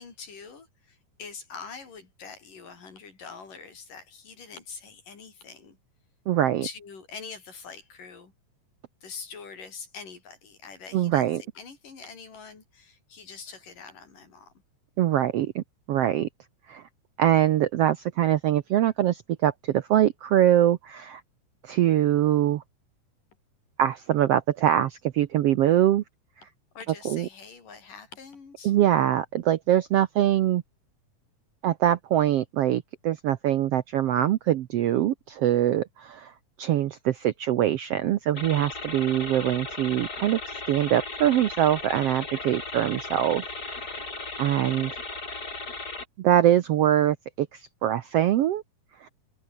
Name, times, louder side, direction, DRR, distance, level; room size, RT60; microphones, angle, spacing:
voice 1, 0.0-5.8 6.6-8.3 9.0-14.5 26.7-28.7, left 5 dB, 80° left, 6.7 m, -44 dB
voice 2, 6.3-6.6 10.9-11.4 15.0-16.3 16.7-16.8 17.2-21.2 21.6-22.6 23.8-26.0 27.0-27.3 28.6-30.6 31.6-36.3 36.6-44.1 44.4-44.9 46.2-48.6 49.0-49.1, right 12 dB, 70° right, 1.4 m, -23 dB
sound 1, 38.4-46.0, left 3 dB, 30° left, 4.6 m, -36 dB
omnidirectional pair, 3.7 m